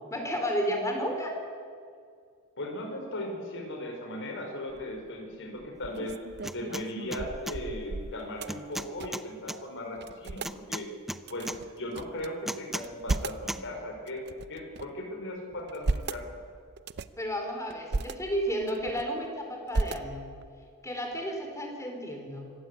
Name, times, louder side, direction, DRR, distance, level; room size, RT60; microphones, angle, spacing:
voice 1, 0.0-1.4 17.2-20.3 20.8-22.5, equal, 15° left, 3 dB, 4.3 m, -32 dB
voice 2, 2.6-6.2 6.5-10.9 11.3-14.2 14.5-16.3, left 1 dB, 60° left, 2 dB, 5.1 m, -37 dB
sound 1, 4.7-5.1 5.6-9.3 9.6-9.7 10.0-10.6 11.2-12.3 12.7-13.5 14.1-15.0 15.5-16.2 16.8-17.2 17.7-18.1 18.6-19.3 19.7-20.5, right 3 dB, 50° right, 0.7 m, -35 dB
sound 2, 6.4-6.8 7.1-7.6 8.5-9.6 10.4-11.6 12.5-13.2 13.5-13.6, equal, ahead, 0.6 m, -35 dB
25.5 x 15.5 x 10.0 m, 2.2 s
head